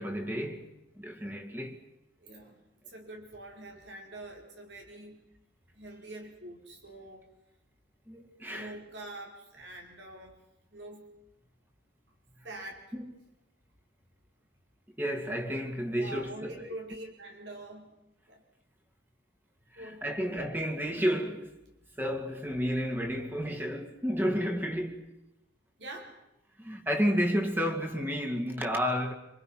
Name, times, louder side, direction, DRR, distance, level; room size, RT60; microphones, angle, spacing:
voice 1, 0.0-1.9 8.1-8.8 12.9-13.1 15.0-16.7 19.7-21.6 22.0-25.2 26.6-29.1, equal, 10° right, 2.4 m, -31 dB
voice 2, 2.2-2.6 2.9-5.3 5.7-7.3 8.5-10.4 10.7-11.1 12.4-12.8 15.9-17.9 18.3-18.4 19.8-20.4 25.8-26.1, right 1 dB, 75° right, 5.3 m, -45 dB
26.5 x 26.0 x 5.9 m
head